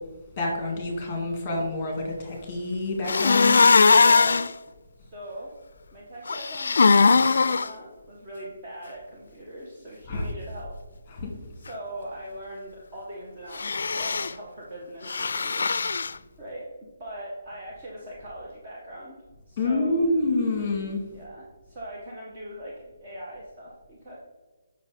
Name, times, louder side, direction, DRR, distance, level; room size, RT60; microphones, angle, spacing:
voice 1, 0.4-3.7 10.1-10.3 11.2-11.3 19.6-21.0, left 2 dB, 20° left, 2 dB, 2.0 m, -27 dB
sound 1, 3.1-4.5 6.3-7.7 13.5-14.3 15.1-16.1, left 4 dB, 65° left, 0.4 m, -20 dB
voice 2, 4.0-4.5 5.0-5.5 5.9-10.8 11.5-15.6 16.4-16.7 17.0-19.2 19.5-20.1 21.1-24.2, equal, 20° right, -5 dB, 1.2 m, -40 dB
7.1 x 5.9 x 4.9 m, 1.3 s
hypercardioid pair, 175°, 0 cm